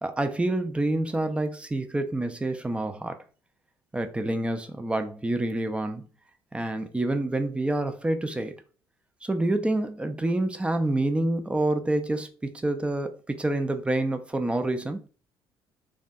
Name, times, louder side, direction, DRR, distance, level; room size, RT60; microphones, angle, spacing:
voice 1, 0.0-3.2 3.9-6.1 6.5-8.5 9.2-15.0, right 2 dB, 10° right, 0.3 m, -27 dB
2.5 x 2.2 x 2.3 m
figure-of-eight pair, 55°, 13 cm